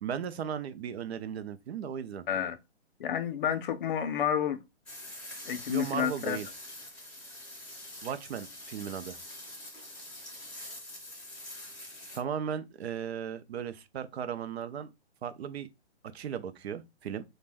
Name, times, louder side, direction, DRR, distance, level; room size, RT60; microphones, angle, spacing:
voice 1, 0.0-2.2 5.7-6.5 8.0-9.2 12.1-14.9 15.2-15.7 16.1-17.2, right 8 dB, 70° right, 0.5 m, -36 dB
voice 2, 2.3-2.6 3.0-4.6 5.5-6.4, left 9 dB, 50° left, 0.4 m, -30 dB
sound 1, 4.9-12.2, left 1 dB, 5° left, 0.5 m, -45 dB
2.5 x 2.1 x 3.3 m
hypercardioid pair, 150°, 33 cm